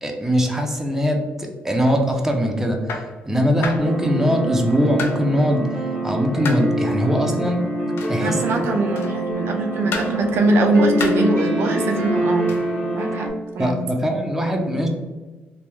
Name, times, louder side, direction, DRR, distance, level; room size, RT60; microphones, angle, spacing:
voice 1, 0.0-5.7 6.0-7.6 8.1-8.7 13.6-14.9, equal, 10° right, 2 dB, 0.6 m, -21 dB
sound 1, 1.9-2.1 2.9-3.2 3.6-3.9 5.0-5.3 6.5-6.7 8.0-8.2 9.0-9.3 9.9-10.2 11.0-11.3 12.5-12.7, left 4 dB, 65° left, 0.4 m, -30 dB
sound 2, 3.8-13.3, right 1 dB, 20° left, 1.5 m, -25 dB
voice 2, 8.2-12.5 12.9-13.8, right 2 dB, 75° right, 3 dB, 0.4 m, -22 dB
2.9 x 2.2 x 3.3 m, 1.3 s
cardioid pair, 80°, 4 cm